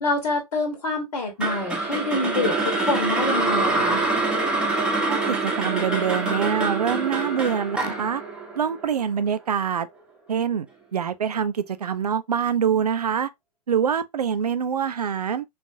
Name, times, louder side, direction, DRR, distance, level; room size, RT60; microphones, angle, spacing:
voice 1, 0.0-4.0, left 3 dB, 60° left, 1.2 m, -26 dB
sound 1, 1.4-9.6, right 3 dB, 5° right, 0.8 m, -25 dB
voice 2, 5.1-8.2 8.6-9.9 10.3-10.7 10.9-13.3 13.7-15.4, right 7 dB, 75° right, 0.5 m, -25 dB
3.9 x 2.6 x 2.5 m
figure-of-eight pair, 100°, 20 cm